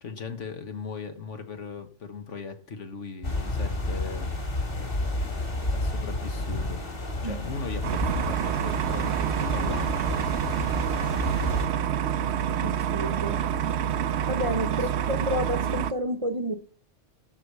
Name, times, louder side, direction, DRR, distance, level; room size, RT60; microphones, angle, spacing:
voice 1, 0.0-4.3 5.1-5.3 5.7-6.9 7.2-10.1 10.5-11.2, left 5 dB, 75° left, 1.7 m, -39 dB
sound 1, 3.2-11.7, left 2 dB, 50° left, 2.5 m, -31 dB
sound 2, 7.8-15.9, right 9 dB, 65° right, 0.9 m, -27 dB
voice 2, 12.6-13.4 14.3-16.6, equal, 30° right, 0.9 m, -30 dB
12.5 x 4.9 x 6.8 m
omnidirectional pair, 1.3 m